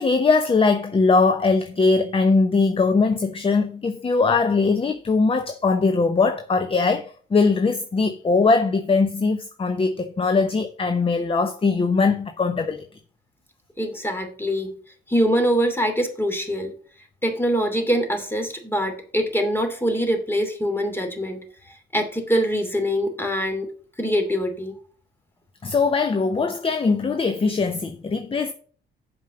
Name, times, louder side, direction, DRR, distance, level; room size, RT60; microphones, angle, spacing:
voice 1, 0.0-12.8 25.6-28.5, left 4 dB, 25° left, 0.9 m, -21 dB
voice 2, 13.8-14.7 15.1-16.7 17.2-23.7 24.0-24.8, equal, 10° left, 2.7 m, -24 dB
7.5 x 5.2 x 6.8 m
cardioid pair, 90°, 20 cm